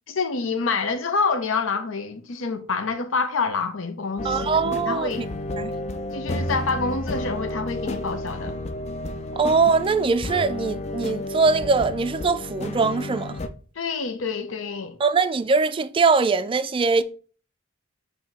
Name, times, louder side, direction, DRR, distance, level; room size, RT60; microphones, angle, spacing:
voice 1, 0.1-5.2 6.1-8.5 13.8-15.0, left 4 dB, 75° left, 0.7 m, -27 dB
sound 1, 4.2-13.5, left 1 dB, 35° left, 0.5 m, -31 dB
voice 2, 4.2-5.3 5.6-5.7 9.4-13.4 15.0-17.0, right 4 dB, 25° right, 0.3 m, -22 dB
7.9 x 2.8 x 4.2 m
head